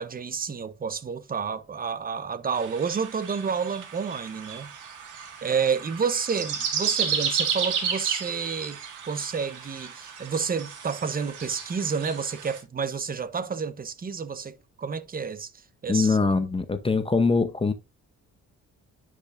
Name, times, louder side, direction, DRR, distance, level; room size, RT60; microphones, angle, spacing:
voice 1, 0.0-4.7 5.4-8.8 9.1-15.5 15.8-16.2, right 6 dB, 30° right, 0.8 m, -30 dB
sound 1, 2.5-12.6, right 7 dB, 80° right, 1.9 m, -32 dB
voice 2, 15.9-17.7, left 4 dB, 20° left, 0.7 m, -23 dB
10.0 x 5.0 x 2.5 m
cardioid pair, 90°, 30 cm